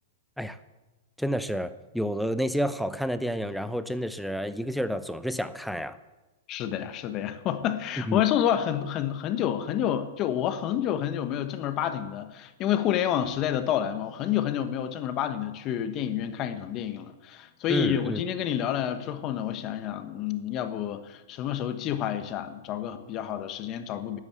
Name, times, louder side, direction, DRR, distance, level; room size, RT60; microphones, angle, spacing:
voice 1, 1.2-6.0 8.1-8.2 17.7-18.2, equal, ahead, 12 dB, 0.7 m, -30 dB
voice 2, 6.5-24.2, left 10 dB, 35° left, 9 dB, 1.2 m, -29 dB
12.5 x 8.0 x 8.0 m, 1.1 s
hypercardioid pair, 125°, 0 cm